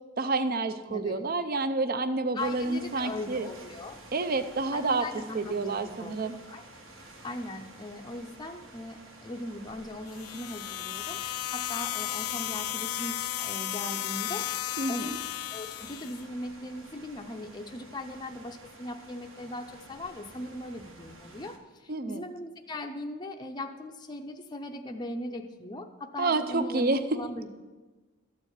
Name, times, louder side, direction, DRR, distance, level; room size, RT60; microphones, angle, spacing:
voice 1, 0.2-3.5 4.1-5.0 5.3-6.4 14.8-15.2 21.9-22.2 26.2-27.2, right 3 dB, 45° right, 11 dB, 0.5 m, -29 dB
voice 2, 2.3-4.0 4.7-6.7 7.2-11.2 11.5-14.5 14.9-27.5, left 1 dB, 20° left, 3 dB, 0.5 m, -39 dB
sound 1, 2.4-21.6, right 2 dB, 65° right, 1.3 m, -51 dB
sound 2, 10.1-16.2, left 14 dB, 85° left, 0.3 m, -34 dB
13.5 x 4.4 x 8.1 m, 1.3 s
head